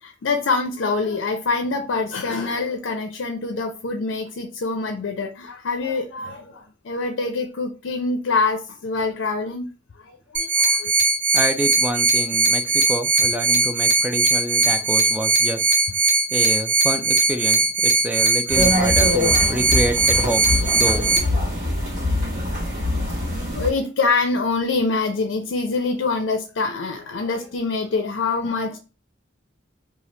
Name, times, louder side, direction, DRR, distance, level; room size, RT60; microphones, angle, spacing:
voice 1, 0.0-9.7 10.0-10.9 18.5-18.6 22.8-23.2 23.5-28.8, left 3 dB, 75° left, 0.4 m, -25 dB
sound 1, 10.3-21.2, right 3 dB, 75° right, 1.0 m, -19 dB
voice 2, 11.3-15.7 16.3-21.0, right 1 dB, 5° right, 0.3 m, -27 dB
sound 2, 18.5-23.7, left 1 dB, 50° right, 1.4 m, -23 dB
2.8 x 2.3 x 3.2 m
head